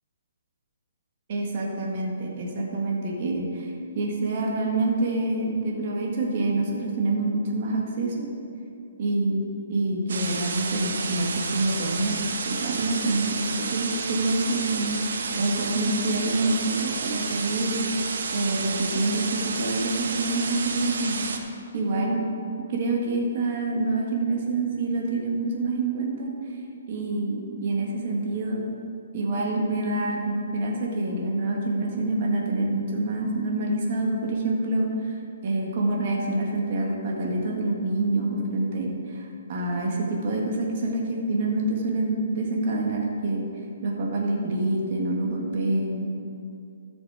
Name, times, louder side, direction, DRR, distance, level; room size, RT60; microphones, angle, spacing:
voice 1, 1.3-8.3 9.0-12.2 12.5-17.9 18.3-22.2 22.7-26.5 26.9-28.7 29.1-35.2 35.4-43.5 43.8-46.1, right 2 dB, 40° right, -1 dB, 1.7 m, -27 dB
sound 1, 10.1-21.4, right 4 dB, 70° right, 1.0 m, -31 dB
13.0 x 6.4 x 4.9 m, 2.6 s
hypercardioid pair, 170°, 0 cm